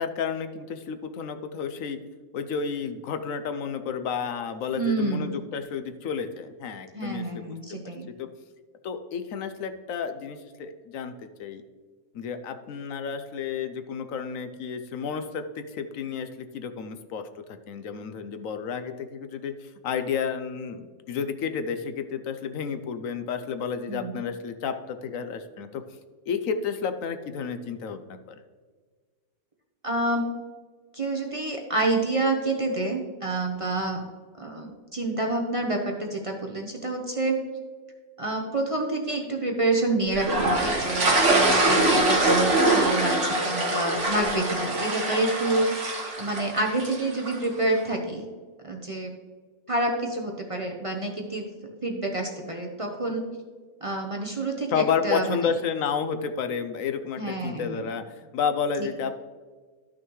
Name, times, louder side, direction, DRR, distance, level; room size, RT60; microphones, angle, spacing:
voice 1, 0.0-2.0 2.3-7.6 8.2-8.3 8.8-11.1 11.4-11.6 12.1-25.8 26.3-28.4 41.5-42.1 42.4-42.5 54.7-59.2, left 6 dB, 70° left, 9 dB, 1.0 m, -31 dB
voice 2, 4.7-5.3 6.9-8.1 23.9-24.2 29.8-30.3 30.9-34.0 34.4-37.4 38.2-45.7 46.2-48.3 48.6-49.1 49.7-51.5 51.8-53.3 53.8-54.7 55.0-55.4 57.2-57.9 58.8-58.9, right 2 dB, 30° right, 1 dB, 0.8 m, -28 dB
sound 1, 40.2-47.4, right 2 dB, 55° right, 1.7 m, -24 dB
13.0 x 6.1 x 3.1 m, 1.5 s
omnidirectional pair, 1.5 m